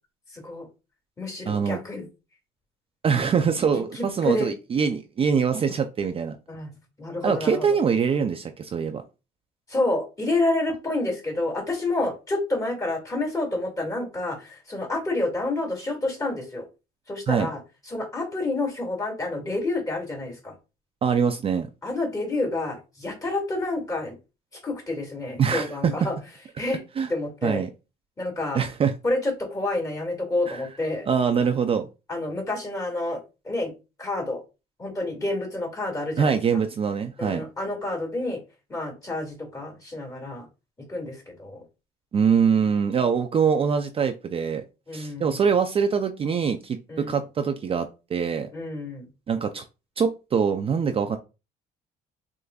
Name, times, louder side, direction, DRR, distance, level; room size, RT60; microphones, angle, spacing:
voice 1, 0.3-0.7 1.2-2.1 3.7-4.5 6.5-6.7 7.0-7.7 9.7-16.7 17.1-17.6 17.9-20.5 21.8-24.2 24.6-26.2 26.6-26.8 27.1-27.6 28.2-28.6 29.0-31.1 32.1-33.7 34.0-34.4 34.8-36.4 37.2-38.4 38.7-40.5 40.9-41.6 44.9-45.4 46.9-47.2 48.5-49.1, left 2 dB, 20° left, 1 dB, 2.2 m, -29 dB
voice 2, 1.5-1.8 3.0-6.4 7.2-9.0 17.3-17.5 21.0-21.7 25.4-26.1 27.0-27.1 27.4-27.7 28.5-28.9 30.5-30.6 31.1-31.9 36.2-37.4 42.1-44.6 44.9-48.5 49.3-49.6 50.0-51.2, right 6 dB, 35° right, 7 dB, 0.4 m, -23 dB
6.5 x 2.5 x 2.3 m, 0.29 s
cardioid pair, 110°, 17 cm